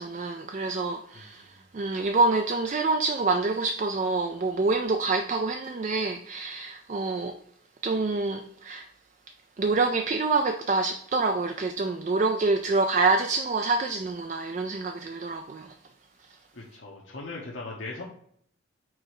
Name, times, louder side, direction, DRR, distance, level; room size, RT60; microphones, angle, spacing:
voice 1, 0.0-7.4 7.8-8.9 9.6-15.7, right 3 dB, 35° right, 0.3 m, -26 dB
voice 2, 1.1-1.5 16.5-18.0, left 3 dB, 70° left, 1.0 m, -39 dB
4.7 x 4.3 x 4.8 m
head